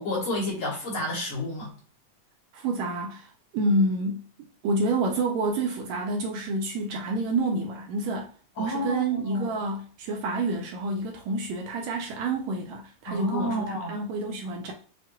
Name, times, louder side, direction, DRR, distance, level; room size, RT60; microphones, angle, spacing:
voice 1, 0.0-1.7 8.6-9.5 13.1-13.9, equal, 55° left, 1.9 m, -30 dB
voice 2, 2.5-4.2 4.6-8.3 8.6-14.7, right 2 dB, 75° right, 1.7 m, -28 dB
6.0 x 2.7 x 2.3 m
omnidirectional pair, 3.5 m